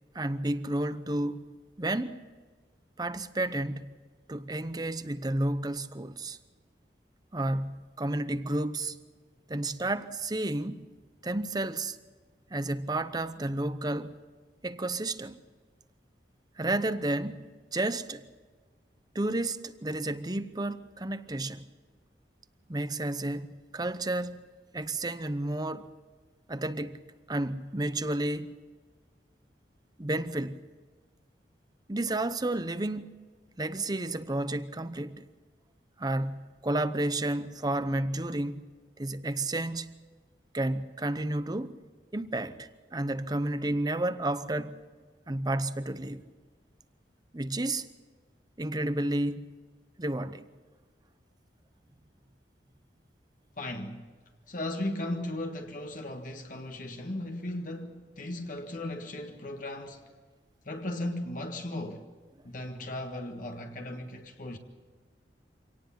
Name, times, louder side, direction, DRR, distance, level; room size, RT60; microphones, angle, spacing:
voice 1, 0.1-1.5 1.8-2.2 3.0-3.9 4.3-6.4 7.3-9.0 9.5-10.9 11.2-12.0 12.5-14.2 14.6-15.4 16.6-18.2 19.1-21.7 22.7-24.4 24.7-25.9 26.5-27.0 27.3-28.5 30.0-30.7 31.9-33.1 33.6-35.3 36.0-38.7 39.0-39.9 40.5-41.8 42.1-44.8 45.3-46.3 47.3-47.9 48.6-49.5 50.0-50.5, right 1 dB, 25° right, 0.8 m, -31 dB
voice 2, 53.6-54.1 54.5-60.1 60.6-62.1 62.4-64.6, left 1 dB, 50° left, 1.6 m, -36 dB
26.0 x 18.0 x 5.9 m
head